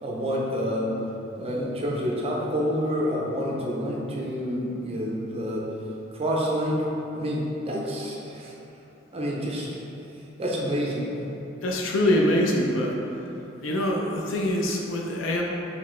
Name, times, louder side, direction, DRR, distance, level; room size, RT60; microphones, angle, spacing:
voice 1, 0.0-0.9 1.4-5.7 6.1-6.8 7.1-8.5 9.1-9.8 10.4-11.1, equal, 30° right, -3 dB, 0.6 m, -28 dB
voice 2, 11.6-13.3 13.6-15.4, left 1 dB, 75° left, -1 dB, 0.5 m, -24 dB
4.1 x 3.3 x 3.1 m, 2.9 s
head